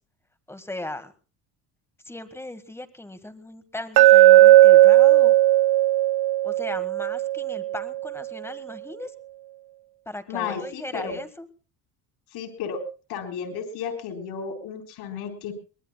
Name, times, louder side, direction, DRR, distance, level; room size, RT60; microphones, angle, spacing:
voice 1, 0.5-1.1 2.0-5.3 6.4-9.1 10.0-11.5, left 1 dB, 5° left, 11 dB, 1.2 m, -37 dB
Glass, 4.0-8.1, right 15 dB, 65° right, 0.8 m, -16 dB
voice 2, 10.3-11.2 12.3-12.8 13.1-15.5, left 6 dB, 65° left, 6 dB, 4.3 m, -33 dB
23.0 x 21.0 x 2.2 m, 0.35 s
cardioid pair, 165°, 42 cm